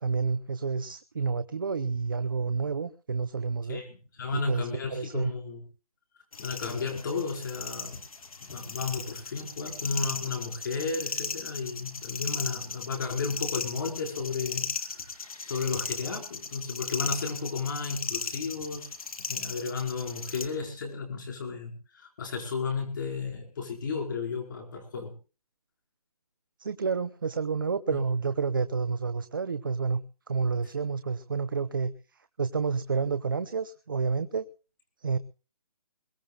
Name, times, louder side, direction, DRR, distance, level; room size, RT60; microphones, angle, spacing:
voice 1, 0.0-3.8 4.3-5.3 26.6-30.0 30.3-31.9 32.4-34.4 35.0-35.2, right 5 dB, 35° right, 0.7 m, -29 dB
voice 2, 3.7-5.6 6.4-8.0 8.5-15.1 15.5-18.9 19.2-25.1 27.9-28.0, left 4 dB, 35° left, 5.0 m, -33 dB
sound 1, 6.3-20.5, left 4 dB, 70° left, 2.6 m, -37 dB
22.0 x 19.0 x 2.4 m
hypercardioid pair, 180°, 19 cm